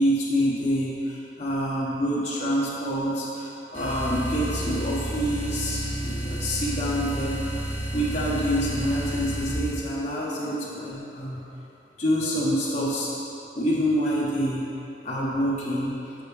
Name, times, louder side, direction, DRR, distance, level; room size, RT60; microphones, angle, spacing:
voice 1, 0.0-7.6 7.9-11.4 12.0-13.1 13.5-14.6 15.0-15.9, equal, 40° left, -8 dB, 0.9 m, -26 dB
sound 1, 3.7-9.8, right 1 dB, 25° right, 1.1 m, -31 dB
6.5 x 5.9 x 3.4 m, 2.9 s
head